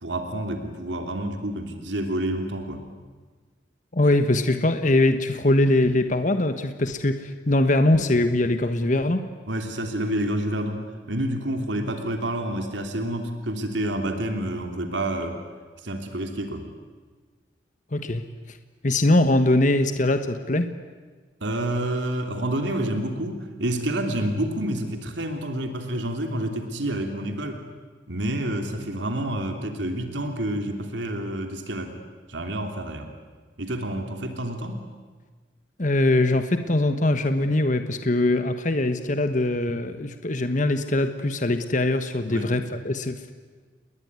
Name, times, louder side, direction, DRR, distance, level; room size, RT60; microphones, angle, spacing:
voice 1, 0.0-2.8 9.5-15.4 15.8-16.6 21.4-27.6 28.1-31.9 32.3-33.1 33.6-34.8 42.3-42.5, right 1 dB, 85° right, 5 dB, 3.1 m, -28 dB
voice 2, 3.9-9.3 17.9-18.2 18.5-18.6 18.8-20.7 35.8-43.3, left 2 dB, 45° left, 8 dB, 1.3 m, -22 dB
29.5 x 21.0 x 9.7 m, 1.4 s
head